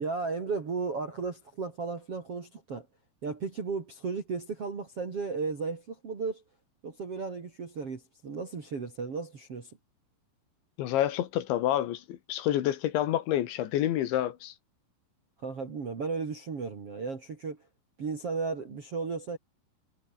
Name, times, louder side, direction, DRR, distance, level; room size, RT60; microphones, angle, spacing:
voice 1, 0.0-2.9 3.2-6.4 6.8-9.7 15.4-17.6 18.0-19.4, right 4 dB, 35° right, 3.2 m, -34 dB
voice 2, 10.8-14.5, left 12 dB, 70° left, 3.8 m, -28 dB
omnidirectional pair, 5.7 m